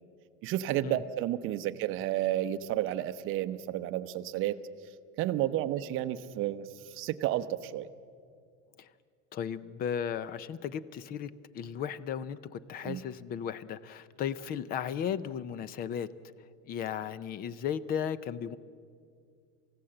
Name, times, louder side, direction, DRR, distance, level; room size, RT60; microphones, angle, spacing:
voice 1, 0.4-4.6 5.2-7.9 12.8-13.0, right 13 dB, 35° right, 10 dB, 0.8 m, -31 dB
voice 2, 9.3-16.1 16.7-18.6, left 8 dB, 25° left, 18 dB, 0.5 m, -35 dB
28.0 x 16.0 x 7.8 m, 2.2 s
supercardioid pair, 160°, 36 cm